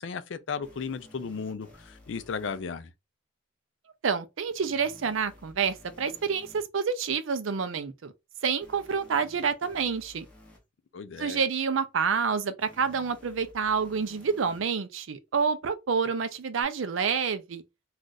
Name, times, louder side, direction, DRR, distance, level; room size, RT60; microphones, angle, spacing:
voice 1, 0.0-2.9 10.9-11.4, left 5 dB, 65° left, 0.4 m, -35 dB
sound 1, 0.6-2.6 4.6-6.6 8.6-10.6 12.6-14.6 16.6-16.7, left 1 dB, 5° left, 0.8 m, -54 dB
voice 2, 4.0-8.1 8.4-10.3 11.2-17.6, right 6 dB, 85° right, 0.5 m, -28 dB
2.4 x 2.4 x 3.9 m
head